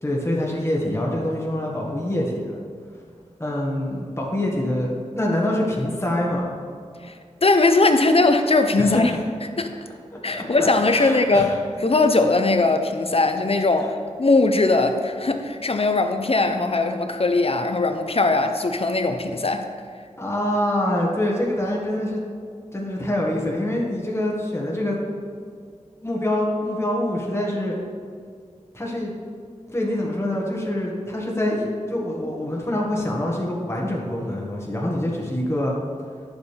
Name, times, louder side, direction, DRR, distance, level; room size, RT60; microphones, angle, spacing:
voice 1, 0.0-2.6 3.4-6.5 8.8-9.0 10.3-11.6 13.8-13.9 20.2-22.2 22.7-25.0 26.0-27.7 28.7-29.1 29.7-35.7, left 1 dB, 20° left, -3 dB, 1.6 m, -25 dB
voice 2, 7.4-9.1 9.6-9.7 10.2-13.9 14.2-19.6, left 3 dB, 50° left, 6 dB, 0.7 m, -20 dB
10.0 x 7.1 x 3.4 m, 2.1 s
wide cardioid pair, 50°, 13 cm